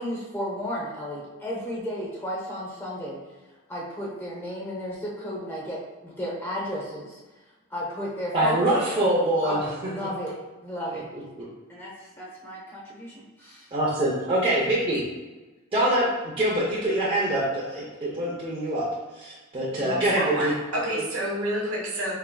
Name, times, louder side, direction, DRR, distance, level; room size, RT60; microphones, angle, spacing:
voice 1, 0.0-3.2 3.7-7.2 7.7-9.1 9.4-10.3 10.6-11.0 11.7-13.7, equal, 10° left, -5 dB, 0.7 m, -33 dB
voice 2, 8.3-9.6 11.4-11.5 13.7-15.0 15.7-16.1 16.4-18.9 19.1-20.5, right 1 dB, 25° right, -8 dB, 0.7 m, -24 dB
voice 3, 19.7-22.1, right 1 dB, 90° right, -4 dB, 1.1 m, -29 dB
4.6 x 3.3 x 2.2 m, 1.2 s
head